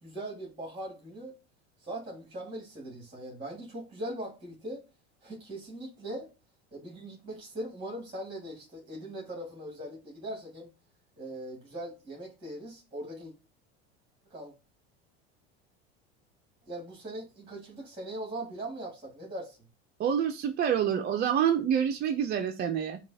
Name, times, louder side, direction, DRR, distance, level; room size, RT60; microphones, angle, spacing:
voice 1, 0.0-1.3 1.8-4.8 5.2-6.3 6.7-10.7 11.2-13.3 14.3-14.5 16.7-19.6, right 1 dB, 15° right, 1.9 m, -40 dB
voice 2, 20.0-23.0, right 8 dB, 30° right, 0.5 m, -27 dB
6.8 x 2.3 x 2.7 m
supercardioid pair, 100°, 31 cm